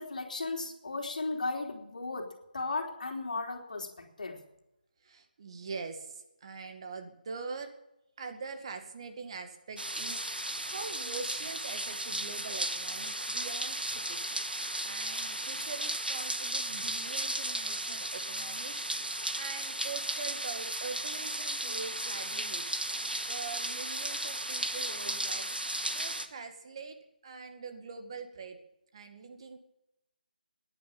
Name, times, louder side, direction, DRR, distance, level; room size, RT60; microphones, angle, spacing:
voice 1, 0.0-4.4, left 3 dB, 55° left, 1 dB, 3.3 m, -36 dB
voice 2, 5.0-7.7 8.2-14.2 14.8-18.9 19.4-22.8 23.3-25.5 25.9-27.0 27.2-28.6 28.9-29.6, right 4 dB, 35° right, 6 dB, 2.1 m, -43 dB
sound 1, 9.8-26.3, right 1 dB, 85° right, 1.7 m, -35 dB
15.5 x 10.5 x 8.9 m, 0.87 s
figure-of-eight pair, 155°, 5 cm